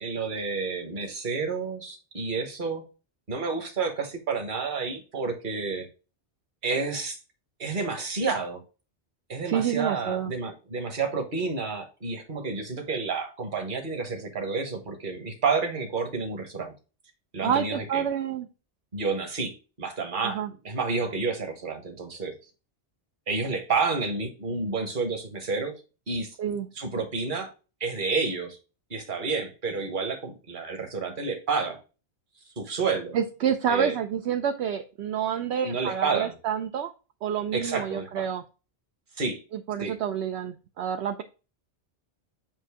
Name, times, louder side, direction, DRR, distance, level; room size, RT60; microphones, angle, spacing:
voice 1, 0.0-2.8 3.3-5.9 6.6-7.2 7.6-8.6 9.3-16.7 17.3-18.1 18.9-22.3 23.3-25.7 26.1-26.3 26.8-27.5 27.8-28.6 28.9-31.8 32.6-33.2 33.7-33.9 35.6-36.3 37.5-38.3 39.2-39.4 39.8-39.9, right 4 dB, 45° right, 5 dB, 1.3 m, -30 dB
voice 2, 9.5-10.3 17.4-18.5 20.2-20.5 26.4-26.7 33.1-36.9 37.2-38.4 39.5-41.2, right 8 dB, 70° right, 5 dB, 0.8 m, -28 dB
7.5 x 2.7 x 4.7 m, 0.32 s
omnidirectional pair, 1.2 m